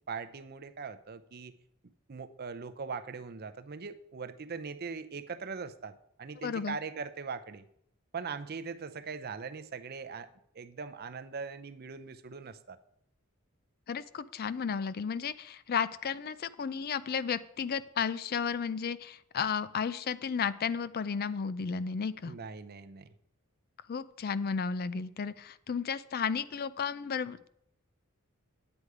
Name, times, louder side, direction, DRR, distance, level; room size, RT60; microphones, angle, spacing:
voice 1, 0.1-1.6 2.1-7.6 8.1-10.3 10.5-12.8 22.3-23.1, right 5 dB, 45° right, 11 dB, 0.6 m, -41 dB
voice 2, 6.4-6.8 13.9-22.3 23.9-27.5, left 6 dB, 45° left, 16 dB, 0.4 m, -33 dB
9.7 x 8.0 x 4.8 m, 0.73 s
head